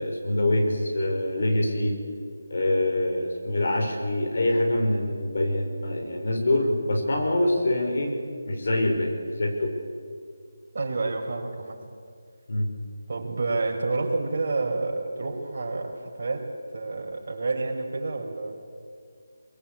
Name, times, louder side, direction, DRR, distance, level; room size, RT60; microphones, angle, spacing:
voice 1, 0.0-2.0 2.5-8.1 8.5-9.7 12.5-12.7, left 1 dB, 60° left, 3 dB, 5.7 m, -25 dB
voice 2, 10.7-11.8 13.1-18.5, right 3 dB, 50° right, 1 dB, 4.8 m, -29 dB
23.5 x 22.5 x 8.9 m, 2.2 s
figure-of-eight pair, 170°, 0 cm